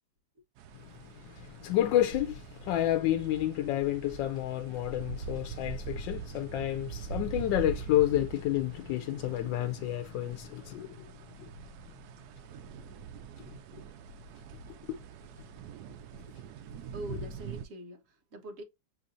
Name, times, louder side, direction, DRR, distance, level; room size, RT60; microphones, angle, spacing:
sound 1, 0.6-17.7, right 6 dB, 70° right, 1.0 m, -43 dB
voice 1, 0.7-11.5 13.5-13.8 14.9-15.0 17.1-17.2, left 13 dB, 85° left, 1.3 m, -30 dB
voice 2, 16.9-18.6, right 1 dB, 50° right, 1.4 m, -43 dB
7.6 x 2.6 x 2.5 m
omnidirectional pair, 1.9 m